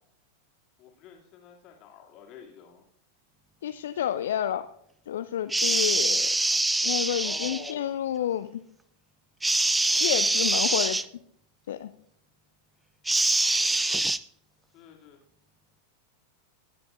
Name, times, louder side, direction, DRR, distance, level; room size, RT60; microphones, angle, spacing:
voice 1, 0.8-2.9 7.2-8.3 9.9-11.0 14.7-15.2, left 7 dB, 35° left, -1 dB, 2.4 m, -49 dB
voice 2, 3.6-4.7 5.1-6.3 6.8-8.6 10.0-11.0 11.7-11.9, left 10 dB, 60° left, 11 dB, 0.4 m, -29 dB
sound 1, 5.5-7.7 9.4-11.1 13.1-14.2, right 2 dB, 5° right, 0.3 m, -24 dB
20.5 x 8.4 x 2.5 m, 0.69 s
figure-of-eight pair, 90°, 0 cm